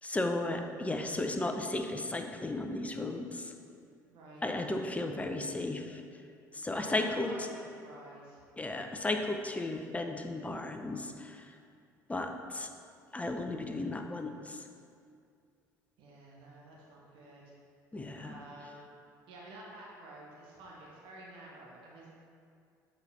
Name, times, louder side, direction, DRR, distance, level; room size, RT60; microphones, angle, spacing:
voice 1, 0.0-3.5 4.4-6.0 6.5-7.3 8.6-11.6 12.1-12.7 13.1-14.7 17.9-18.4, left 2 dB, 15° left, 5 dB, 0.6 m, -35 dB
voice 2, 4.1-4.5 6.6-8.4 16.0-17.5 18.2-18.9 19.3-22.1, right 1 dB, 55° right, -4 dB, 1.2 m, -50 dB
8.0 x 4.1 x 4.1 m, 2.3 s
figure-of-eight pair, 60°, 10 cm